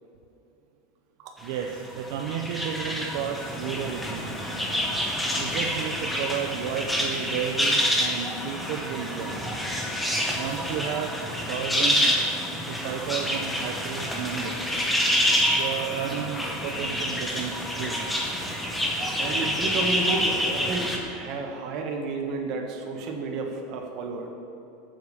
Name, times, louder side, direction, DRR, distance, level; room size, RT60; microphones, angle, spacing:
voice 1, 1.4-4.4 5.4-9.5 10.3-11.2 11.5-12.1 12.7-14.8 15.5-18.0, right 8 dB, 60° right, 2 dB, 0.6 m, -32 dB
sound 1, 1.5-21.0, equal, 5° left, 1.0 m, -27 dB
voice 2, 19.2-24.3, right 3 dB, 45° right, 3 dB, 1.2 m, -31 dB
7.7 x 7.0 x 6.7 m, 2.8 s
supercardioid pair, 160°, 0 cm